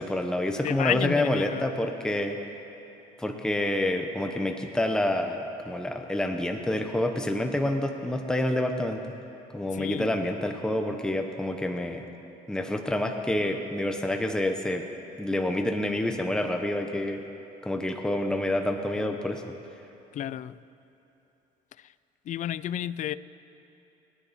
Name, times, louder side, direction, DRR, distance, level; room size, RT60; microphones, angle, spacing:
voice 1, 0.0-2.4 3.2-9.0 9.5-12.1 12.5-14.8 15.2-17.2 17.6-19.6, left 1 dB, 5° left, 4 dB, 0.9 m, -28 dB
voice 2, 0.6-1.7 9.7-10.2 20.1-20.6 22.3-23.1, left 11 dB, 50° left, 17 dB, 0.4 m, -31 dB
29.0 x 10.0 x 4.3 m, 2.9 s
cardioid pair, 110°, 17 cm